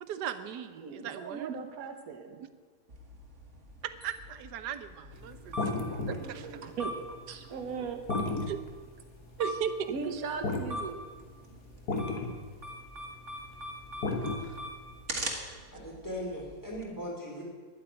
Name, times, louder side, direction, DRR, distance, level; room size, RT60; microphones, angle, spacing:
voice 1, 0.0-1.5 3.8-5.6 6.3-6.4 8.5-8.6 9.4-9.9 14.4-14.6, right 8 dB, 85° right, 11 dB, 1.4 m, -36 dB
voice 2, 0.8-2.4 5.5-8.0 9.9-11.1, right 5 dB, 65° right, 5 dB, 1.6 m, -39 dB
sound 1, 2.9-16.8, equal, 45° right, 2.0 m, -42 dB
sound 2, 5.2-10.7 11.0-11.1 11.6-11.7 11.9-14.9, left 3 dB, 70° left, 2.0 m, -34 dB
voice 3, 14.1-14.4 15.7-17.4, equal, 10° left, -4 dB, 4.0 m, -39 dB
11.0 x 9.6 x 8.8 m, 1.5 s
omnidirectional pair, 1.7 m